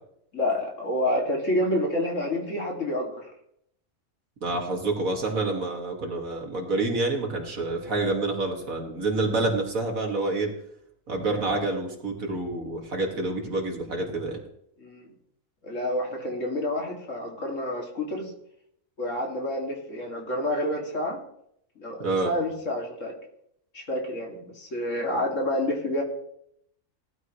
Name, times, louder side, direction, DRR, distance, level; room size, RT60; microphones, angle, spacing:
voice 1, 0.3-3.3 14.8-15.0 15.6-18.3 19.0-21.2 21.8-23.1 23.7-26.0, left 1 dB, 65° left, 0 dB, 2.9 m, -28 dB
voice 2, 4.4-10.5 11.1-14.4 22.0-22.3, right 2 dB, 85° right, 1 dB, 2.6 m, -28 dB
18.5 x 12.5 x 3.2 m, 0.74 s
omnidirectional pair, 1.4 m